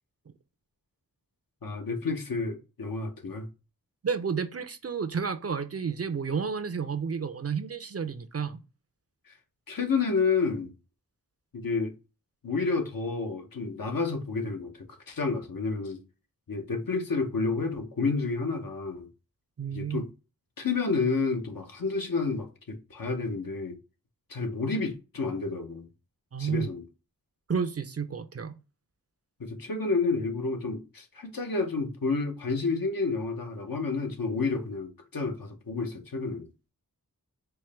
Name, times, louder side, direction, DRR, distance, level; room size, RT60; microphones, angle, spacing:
voice 1, 1.6-3.5 9.3-9.4 9.7-10.7 11.5-11.9 12.4-16.0 16.5-19.1 19.7-20.1 20.6-23.8 24.3-25.9 26.4-26.8 29.4-36.5, left 4 dB, 65° left, 0.8 m, -30 dB
voice 2, 4.0-8.6 19.6-20.0 26.3-26.7 27.5-28.5, right 6 dB, 40° right, 0.5 m, -31 dB
4.5 x 2.1 x 3.3 m
wide cardioid pair, 40°, 37 cm